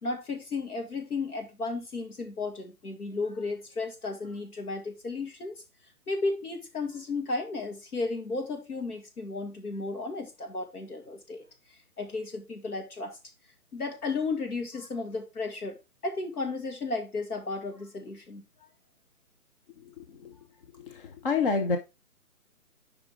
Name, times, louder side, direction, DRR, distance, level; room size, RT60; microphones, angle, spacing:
voice 1, 0.0-5.6 6.1-11.4 11.7-13.2 13.7-15.8 16.0-18.4, left 3 dB, 75° left, 2.4 m, -34 dB
voice 2, 20.0-20.3 21.2-21.8, left 4 dB, 35° left, 0.7 m, -27 dB
8.5 x 5.0 x 3.6 m
hypercardioid pair, 155°, 45 cm